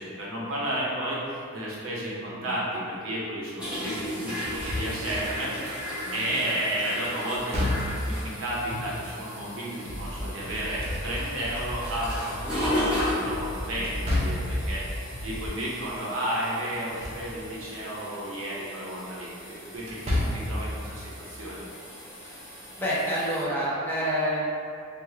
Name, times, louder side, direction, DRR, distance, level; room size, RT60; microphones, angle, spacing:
voice 1, 0.0-14.9 15.2-19.3 19.7-20.0 20.3-21.6, right 1 dB, 70° right, -6 dB, 0.8 m, -32 dB
sound 1, 3.6-23.4, left 1 dB, 5° right, 1.0 m, -36 dB
Slam / Thump thud, 4.4-5.3 7.3-8.2 10.5-11.5 13.8-14.6 16.7-17.3 17.7-17.8 19.8-20.6, left 1 dB, 30° right, 0.6 m, -29 dB
voice 2, 6.0-6.5 22.2-22.4 22.8-24.5, equal, 10° left, -8 dB, 0.6 m, -28 dB
Bass drum, 9.8-15.5, equal, 70° left, 0.7 m, -36 dB
3.4 x 2.4 x 3.1 m, 2.4 s
head